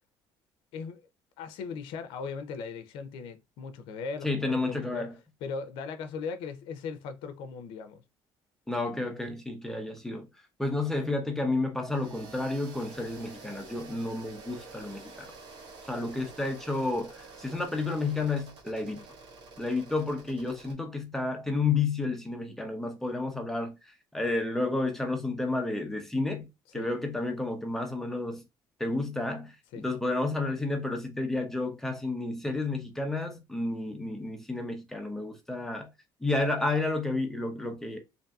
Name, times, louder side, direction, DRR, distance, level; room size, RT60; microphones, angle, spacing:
voice 1, 0.7-1.1 1.4-5.1 5.4-8.0 26.7-26.9 29.7-29.9, left 5 dB, 80° left, 0.5 m, -38 dB
voice 2, 4.2-5.1 8.7-10.3 10.6-15.3 15.8-19.0 19.6-28.4 28.8-35.9 36.2-38.0, left 2 dB, 5° left, 0.8 m, -31 dB
sound 1, 11.9-20.7, right 4 dB, 65° right, 1.0 m, -49 dB
2.6 x 2.6 x 2.3 m
cardioid pair, 115°, 9 cm